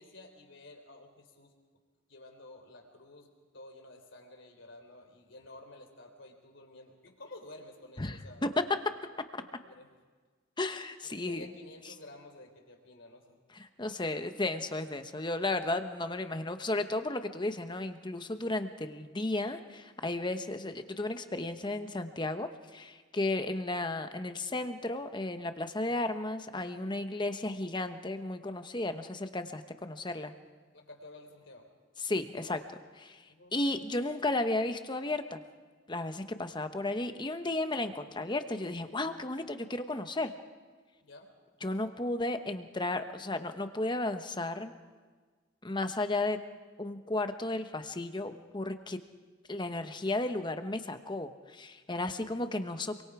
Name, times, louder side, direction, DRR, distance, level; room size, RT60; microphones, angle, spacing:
voice 1, 0.0-1.5 2.1-8.5 9.3-9.9 11.1-13.2 30.7-31.7 33.3-33.6 41.0-41.3, left 2 dB, 65° left, 3 dB, 3.7 m, -52 dB
voice 2, 8.0-8.5 10.6-11.5 13.5-30.3 32.0-32.6 32.9-33.2 33.5-35.4 35.9-40.3 41.6-44.7 45.6-46.4 46.8-49.0 49.5-53.0, left 2 dB, 25° left, 8 dB, 1.0 m, -34 dB
26.5 x 23.5 x 4.9 m, 1.5 s
head